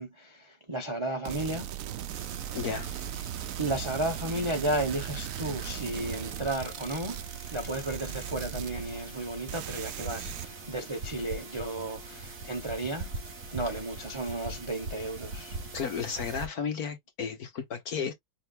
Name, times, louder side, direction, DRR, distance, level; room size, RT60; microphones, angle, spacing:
voice 1, 0.0-1.7 3.6-7.2 7.5-13.1 13.5-15.6, right 1 dB, 25° right, 0.6 m, -33 dB
sound 1, 1.2-9.2 9.5-10.5, right 11 dB, 85° right, 0.7 m, -38 dB
sound 2, 2.1-16.5, right 3 dB, 45° right, 2.0 m, -42 dB
voice 2, 2.5-2.9 15.7-18.1, left 6 dB, 55° left, 1.7 m, -33 dB
5.7 x 3.9 x 2.3 m
omnidirectional pair, 2.1 m